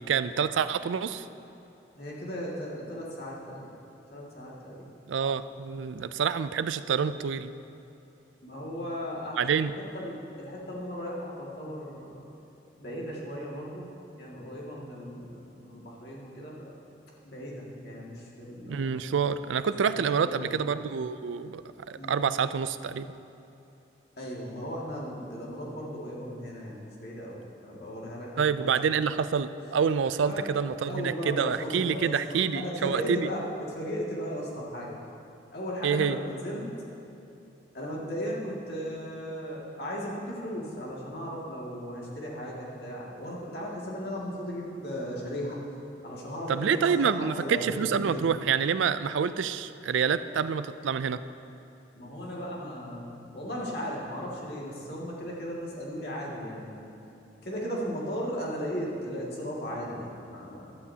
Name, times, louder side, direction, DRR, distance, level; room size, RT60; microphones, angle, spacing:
voice 1, 0.1-1.2 5.1-7.5 9.4-9.7 18.6-21.6 21.9-23.1 28.4-33.3 35.8-36.2 46.5-51.2, right 6 dB, 85° right, 13 dB, 0.4 m, -27 dB
voice 2, 2.0-3.7 4.1-4.9 8.4-12.2 12.8-13.9 14.2-16.7 17.2-19.0 19.8-20.5 22.0-22.1 24.2-28.9 30.3-30.5 30.9-34.9 35.5-36.7 37.7-45.6 46.0-48.3 51.9-57.0 57.4-60.7, equal, 55° left, -4 dB, 2.1 m, -36 dB
15.0 x 11.5 x 2.8 m, 2.9 s
head